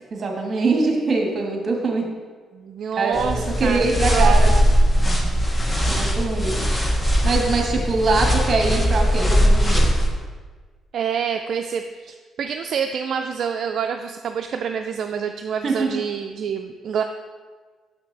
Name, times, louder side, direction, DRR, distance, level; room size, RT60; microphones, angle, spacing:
voice 1, 0.1-2.1 2.9-3.2 3.6-4.4 5.9-6.6 7.2-10.0 15.6-16.0, right 3 dB, 45° right, 1 dB, 1.4 m, -23 dB
voice 2, 2.5-4.6 10.9-17.0, right 7 dB, 65° right, 5 dB, 0.3 m, -27 dB
sound 1, 3.1-10.1, equal, 20° left, 1.0 m, -19 dB
7.0 x 5.8 x 3.3 m, 1.5 s
cardioid pair, 90°, 0 cm